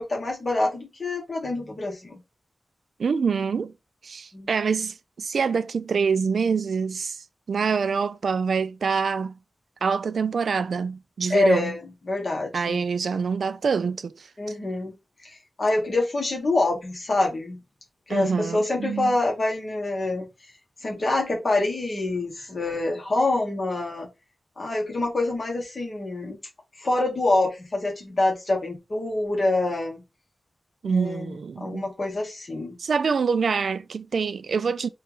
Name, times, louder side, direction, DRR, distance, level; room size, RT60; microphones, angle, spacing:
voice 1, 0.0-2.2 4.3-4.5 11.3-12.8 14.4-14.9 15.2-17.6 18.1-20.3 20.8-24.1 24.6-26.4 26.8-30.0 30.8-32.7, left 2 dB, 45° left, 1.3 m, -26 dB
voice 2, 3.0-3.7 4.0-9.3 9.8-11.7 12.5-14.3 18.1-19.2 30.8-31.9 32.8-34.9, right 5 dB, 80° right, 0.4 m, -25 dB
4.5 x 2.4 x 4.8 m
wide cardioid pair, 135°, 0 cm